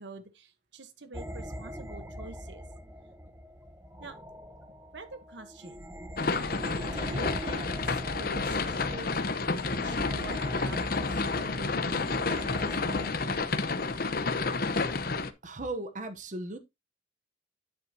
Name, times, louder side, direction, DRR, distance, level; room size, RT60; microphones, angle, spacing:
voice 1, 0.0-2.7 4.0-4.2 4.9-5.9 6.8-9.3 9.6-13.8, right 3 dB, 65° right, 1.2 m, -46 dB
sound 1, 1.1-13.1, equal, 10° right, 0.9 m, -42 dB
sound 2, 6.2-15.3, left 3 dB, 50° left, 0.9 m, -30 dB
voice 2, 15.4-16.6, right 2 dB, 40° right, 0.9 m, -36 dB
10.0 x 8.2 x 2.8 m
head